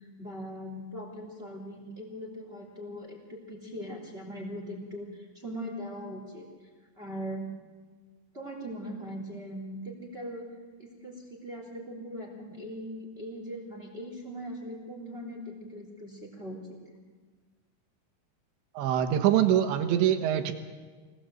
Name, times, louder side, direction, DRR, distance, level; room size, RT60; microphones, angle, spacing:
voice 1, 0.0-6.5 7.0-7.5 8.3-10.5 10.8-17.0, equal, 15° right, 0 dB, 3.2 m, -40 dB
voice 2, 18.8-20.5, right 10 dB, 90° right, 7 dB, 3.6 m, -24 dB
24.0 x 19.0 x 7.9 m, 1.4 s
omnidirectional pair, 5.1 m